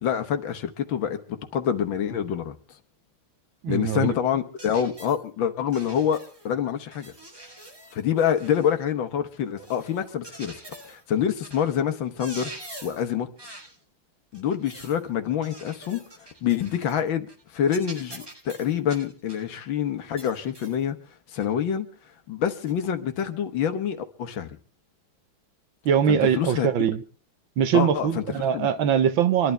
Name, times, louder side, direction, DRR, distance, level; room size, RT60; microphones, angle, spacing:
voice 1, 0.0-2.6 3.7-6.2 6.5-7.1 7.9-10.6 10.8-12.5 12.8-13.3 14.3-16.0 16.4-21.0 21.3-21.9 22.3-24.6 26.1-26.7 27.7-28.2 28.5-28.7, left 8 dB, 70° left, 1.8 m, -26 dB
voice 2, 3.6-4.1 25.8-27.0 27.6-29.5, right 8 dB, 75° right, 1.7 m, -22 dB
sound 1, 4.6-5.2 5.7-6.5 6.9-8.8 9.6-11.0 11.4-11.7 12.0-13.1 13.4-13.8 14.3-15.0 15.4-17.0 17.3-17.4 17.7-19.5 20.2-20.8 21.4-21.5 22.7-22.8, right 1 dB, 15° right, 1.3 m, -45 dB
26.0 x 11.5 x 3.4 m
omnidirectional pair, 2.2 m